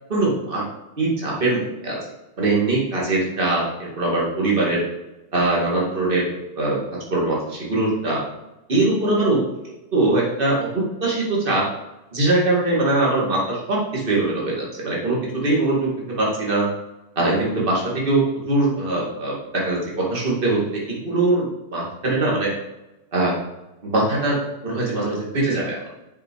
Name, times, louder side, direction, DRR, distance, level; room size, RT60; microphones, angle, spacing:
voice 1, 0.1-0.6 1.0-2.0 2.4-4.8 5.3-6.2 6.6-6.8 7.1-8.2 8.7-9.4 9.9-10.7 11.0-11.7 12.1-16.7 17.2-20.6 20.9-21.5 21.7-22.5 23.1-23.3 23.8-24.4 24.6-25.8, right 2 dB, 25° right, -4 dB, 2.2 m, -21 dB
7.2 x 5.3 x 4.7 m, 0.97 s
omnidirectional pair, 2.4 m